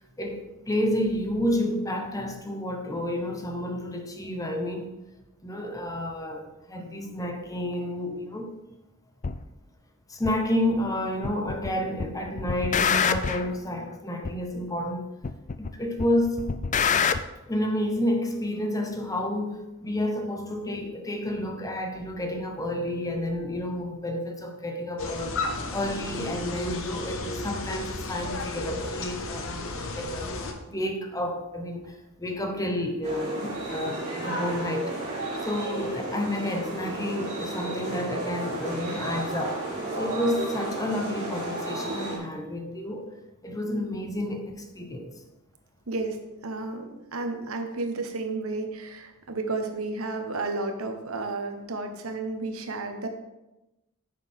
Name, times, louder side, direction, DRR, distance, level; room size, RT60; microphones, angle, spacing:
voice 1, 0.2-5.0 5.4-8.6 10.1-15.1 15.6-16.5 17.5-35.0 35.4-39.6 40.0-43.1 43.4-45.1, left 1 dB, 15° left, 4 dB, 0.9 m, -30 dB
sound 1, 9.2-9.4 10.2-10.3 11.2-11.7 12.0-13.5 14.2-14.3 15.2-15.7 16.0-17.2, left 6 dB, 35° left, 0.4 m, -25 dB
sound 2, 25.0-30.5, left 2 dB, 65° left, 1.0 m, -33 dB
sound 3, 33.0-42.2, right 2 dB, 35° right, 3.3 m, -33 dB
voice 2, 45.9-46.2 46.4-53.1, right 3 dB, 75° right, 5 dB, 1.1 m, -32 dB
10.0 x 6.7 x 3.6 m, 0.98 s
head